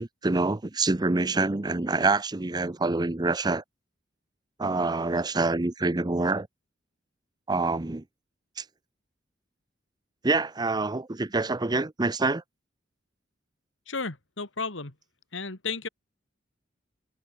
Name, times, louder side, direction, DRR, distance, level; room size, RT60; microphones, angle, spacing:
voice 1, 0.0-3.6 4.6-6.5 7.5-8.0 8.6-8.7 10.2-12.4, right 3 dB, 20° right, 0.6 m, -26 dB
voice 2, 13.9-14.9 15.3-15.9, left 4 dB, 75° left, 2.5 m, -33 dB
head